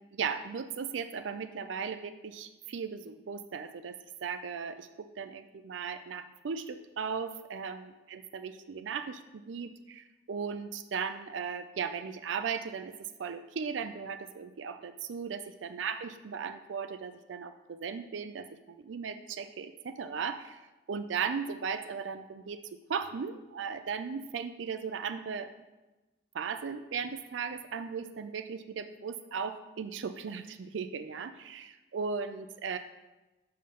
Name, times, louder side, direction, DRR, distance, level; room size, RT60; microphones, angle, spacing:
voice 1, 0.0-12.9 13.2-20.6 20.9-22.6 22.9-25.5 26.3-32.8, right 6 dB, 85° right, 10 dB, 0.4 m, -37 dB
5.7 x 5.2 x 6.6 m, 1.1 s
head